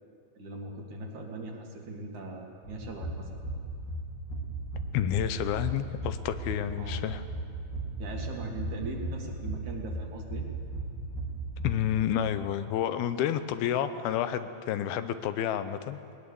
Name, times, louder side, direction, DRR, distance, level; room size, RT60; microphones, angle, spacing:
voice 1, 0.3-3.3 6.8-7.0 8.0-10.4, right 2 dB, 55° right, 1 dB, 3.2 m, -40 dB
sound 1, 2.6-11.8, right 2 dB, 60° left, 5.2 m, -36 dB
voice 2, 4.9-7.2 11.6-16.0, left 10 dB, 85° left, 11 dB, 2.7 m, -30 dB
20.0 x 20.0 x 7.1 m, 2.5 s
omnidirectional pair, 4.3 m